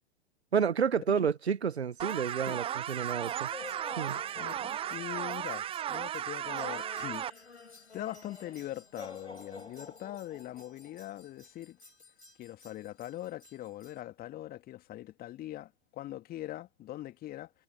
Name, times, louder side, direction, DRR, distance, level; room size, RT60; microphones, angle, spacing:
voice 1, 0.5-3.5 4.0-4.2, right 7 dB, 70° right, 1.4 m, -30 dB
sound 1, 2.0-7.3, right 10 dB, 15° right, 0.9 m, -35 dB
sound 2, 2.1-14.0, left 4 dB, 75° left, 4.8 m, -51 dB
voice 2, 4.3-7.5 7.9-11.8 12.4-17.5, left 14 dB, 25° left, 2.6 m, -42 dB
figure-of-eight pair, 100°, 34 cm